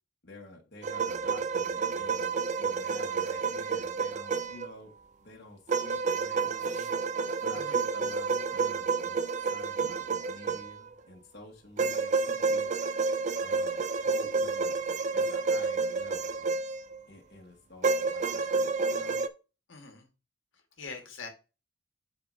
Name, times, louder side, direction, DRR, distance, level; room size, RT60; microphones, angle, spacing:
voice 1, 0.2-4.9 5.2-6.9 7.4-9.2 9.5-12.7 13.4-14.8 15.1-16.5 17.1-19.2, left 1 dB, 55° left, 0 dB, 1.4 m, -50 dB
sound 1, 0.8-4.7 5.7-11.0 11.8-17.0 17.8-19.3, right 4 dB, 35° right, 0.4 m, -30 dB
voice 2, 19.7-20.1 20.8-21.3, left 4 dB, 75° left, 3 dB, 1.5 m, -43 dB
9.4 x 4.3 x 2.7 m, 0.30 s
head